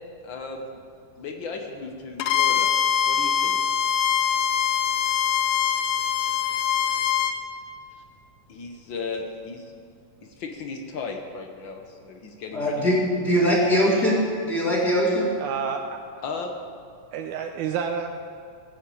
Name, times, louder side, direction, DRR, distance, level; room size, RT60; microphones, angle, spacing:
voice 1, 0.2-0.8 1.2-2.7 3.1-3.6 5.8-5.9 8.5-9.7 10.2-13.2 16.2-16.6, left 4 dB, 70° left, 3 dB, 1.1 m, -36 dB
Bowed string instrument, 2.2-7.4, left 9 dB, 85° left, 2.3 m, -23 dB
voice 2, 12.5-15.3, equal, 30° left, -5 dB, 3.2 m, -22 dB
voice 3, 15.4-16.0 17.1-18.1, right 7 dB, 80° right, 4 dB, 2.0 m, -29 dB
18.0 x 8.1 x 8.5 m, 2.3 s
omnidirectional pair, 3.7 m